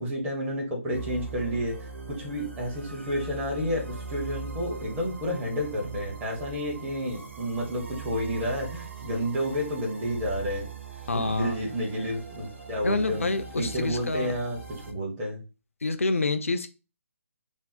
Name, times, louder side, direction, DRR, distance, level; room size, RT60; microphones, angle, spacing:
voice 1, 0.0-10.7 11.1-13.3 13.6-15.4, equal, 15° right, -3 dB, 1.1 m, -30 dB
sound 1, 0.9-14.9, right 5 dB, 55° right, 0.9 m, -41 dB
voice 2, 11.1-11.6 12.8-14.3 15.8-16.7, left 3 dB, 65° left, 8 dB, 0.6 m, -27 dB
3.5 x 2.0 x 4.1 m, 0.30 s
figure-of-eight pair, 140°, 8 cm